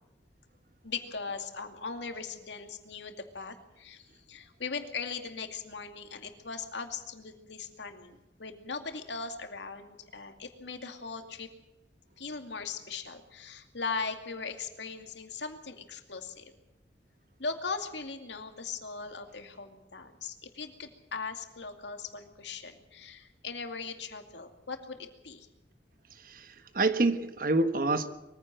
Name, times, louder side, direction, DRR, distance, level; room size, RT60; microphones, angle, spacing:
voice 1, 0.8-11.5 12.2-16.5 17.4-25.5, left 4 dB, 75° left, 6 dB, 2.4 m, -39 dB
voice 2, 26.2-28.1, right 2 dB, 50° right, 10 dB, 1.5 m, -27 dB
22.5 x 15.5 x 7.7 m, 0.97 s
head